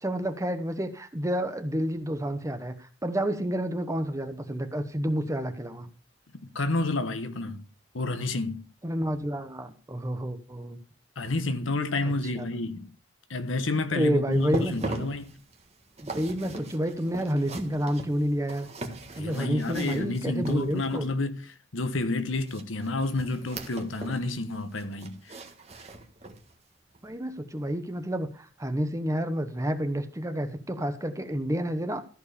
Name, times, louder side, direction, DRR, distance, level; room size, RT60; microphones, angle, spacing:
voice 1, 0.0-5.9 8.8-10.8 12.0-12.4 13.9-15.1 16.0-18.7 19.2-21.1 27.0-32.0, equal, 15° right, 1.0 m, -29 dB
voice 2, 6.5-7.7 7.9-8.7 11.2-12.9 13.3-15.4 19.1-25.4, left 2 dB, 90° left, 1.1 m, -30 dB
sound 1, 14.3-21.1 22.4-24.3 24.5-26.5 26.9-27.1 27.6-27.7, right 2 dB, 35° right, 1.5 m, -40 dB
13.5 x 4.6 x 6.9 m
head